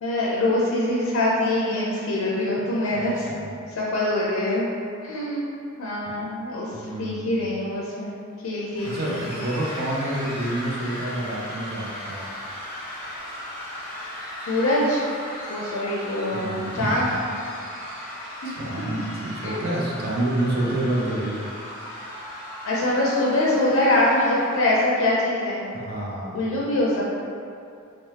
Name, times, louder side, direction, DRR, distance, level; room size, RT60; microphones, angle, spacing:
voice 1, 0.0-3.3 3.7-4.7 5.0-5.4 5.8-6.7 7.0-8.1 8.4-9.2 14.5-15.0 15.5-17.1 18.4-18.5 19.4-19.6 22.6-25.6 26.3-27.0, left 1 dB, 75° left, -5 dB, 0.4 m, -23 dB
voice 2, 2.9-3.5 6.0-6.1 6.7-7.5 8.8-12.3 16.3-17.0 18.4-21.5 25.7-26.5, right 1 dB, 45° right, -4 dB, 0.5 m, -28 dB
sound 1, 8.7-25.0, left 1 dB, 10° left, 1.0 m, -37 dB
2.8 x 2.0 x 3.2 m, 2.5 s
head